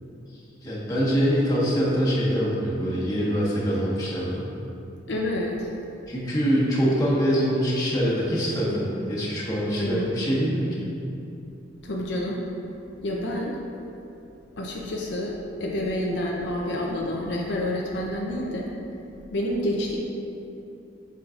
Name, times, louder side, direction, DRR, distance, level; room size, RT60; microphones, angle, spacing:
voice 1, 0.6-4.5 6.1-10.7, equal, 20° left, -7 dB, 1.3 m, -24 dB
voice 2, 5.1-5.7 9.8-10.1 11.8-12.4 13.0-13.6 14.6-18.7 19.3-20.0, left 1 dB, 70° left, -2 dB, 0.6 m, -28 dB
7.8 x 5.7 x 2.5 m, 2.7 s
head